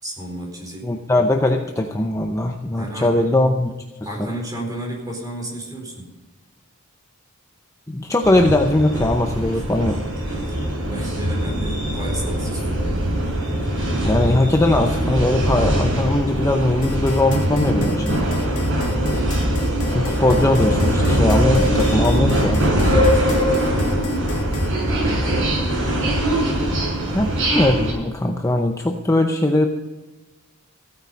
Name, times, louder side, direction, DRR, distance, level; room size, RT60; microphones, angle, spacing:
voice 1, 0.0-1.3 2.8-3.4 4.0-6.1 9.5-10.0 10.2-13.2 18.9-19.3 22.8-24.3 25.2-25.7 27.0-27.3, right 1 dB, 15° right, -1 dB, 4.1 m, -33 dB
voice 2, 0.8-3.7 7.9-10.0 14.0-18.3 19.9-22.7 27.1-29.7, left 1 dB, 15° left, 3 dB, 0.7 m, -20 dB
sound 1, 8.2-27.9, equal, 60° right, 5.5 m, -21 dB
sound 2, 16.8-24.7, left 6 dB, 75° left, 1.9 m, -38 dB
15.5 x 9.4 x 5.2 m, 1.2 s
head